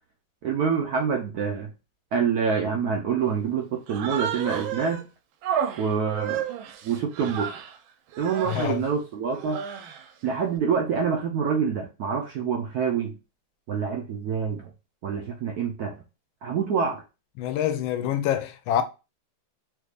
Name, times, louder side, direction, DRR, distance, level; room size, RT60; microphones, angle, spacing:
voice 1, 0.4-1.7 2.1-5.1 5.8-6.4 6.8-7.5 8.2-9.6 10.2-13.2 13.7-14.6 15.0-15.9 16.4-17.0, right 6 dB, 75° right, 0.9 m, -26 dB
Human voice, 3.9-5.0 5.4-7.8 8.1-8.8 9.3-10.1, right 8 dB, 90° right, 1.4 m, -32 dB
voice 2, 8.4-8.8 17.4-18.8, left 10 dB, 85° left, 1.4 m, -26 dB
3.4 x 3.2 x 2.4 m
omnidirectional pair, 2.1 m